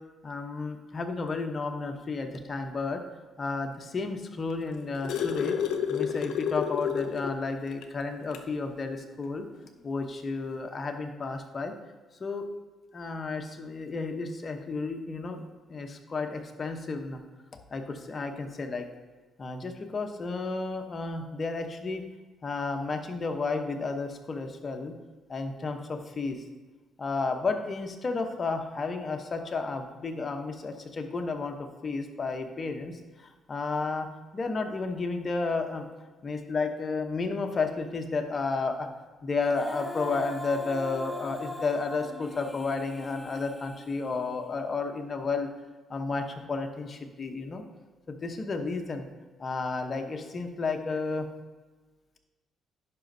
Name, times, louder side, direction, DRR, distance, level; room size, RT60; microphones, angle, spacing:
voice 1, 0.2-3.0 3.4-5.6 5.9-9.5 9.8-11.7 12.2-12.5 12.9-15.4 15.7-17.2 17.7-18.9 19.4-22.0 22.4-24.9 25.3-26.4 27.0-34.1 34.3-35.9 36.2-38.9 39.2-45.5 45.9-47.6 48.1-49.1 49.4-51.3, left 4 dB, 35° left, 5 dB, 0.8 m, -32 dB
sound 1, 4.5-7.4 7.8-7.9 8.3-8.5 9.6-9.7, left 8 dB, 80° left, 0.5 m, -30 dB
Female singing, 39.4-44.6, left 2 dB, 5° left, 0.6 m, -40 dB
11.0 x 5.0 x 2.7 m, 1.3 s
cardioid pair, 90°, 0 cm